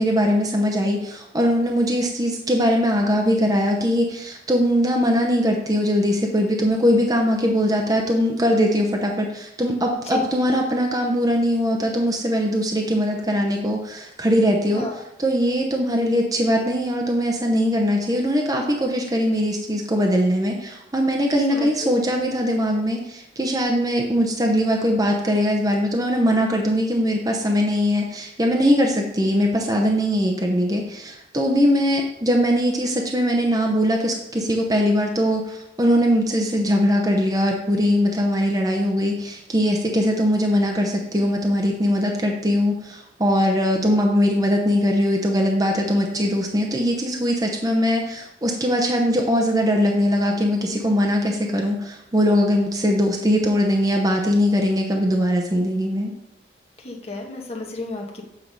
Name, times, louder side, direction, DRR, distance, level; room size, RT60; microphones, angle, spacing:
voice 1, 0.0-14.9 15.2-56.1, equal, 20° right, 1 dB, 0.8 m, -21 dB
voice 2, 21.5-21.9 56.8-58.2, left 2 dB, 35° left, 1 dB, 1.4 m, -32 dB
8.3 x 4.7 x 5.3 m, 0.83 s
head